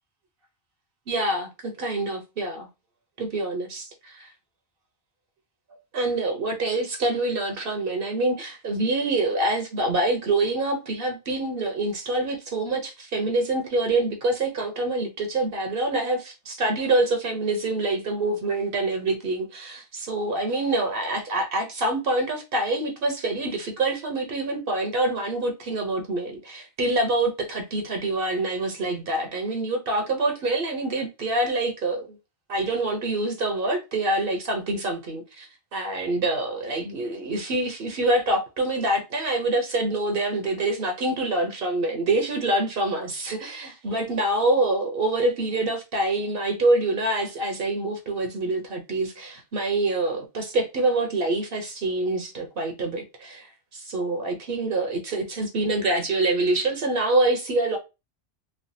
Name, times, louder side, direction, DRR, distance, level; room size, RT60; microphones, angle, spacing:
voice 1, 1.1-2.7 3.2-4.3 5.9-32.1 32.5-57.8, right 2 dB, 65° right, 0.8 m, -26 dB
3.2 x 2.2 x 2.6 m
omnidirectional pair, 1.1 m